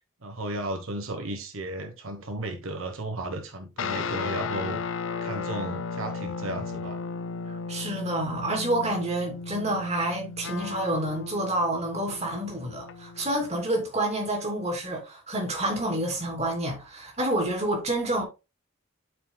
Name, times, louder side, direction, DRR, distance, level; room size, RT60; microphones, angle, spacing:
voice 1, 0.2-4.8 5.2-7.1, right 1 dB, 85° right, 1.2 m, -34 dB
sound 1, 3.8-13.5, left 5 dB, 75° left, 0.7 m, -35 dB
voice 2, 7.7-18.2, right 1 dB, 30° right, 3.0 m, -28 dB
12.5 x 4.9 x 2.3 m
head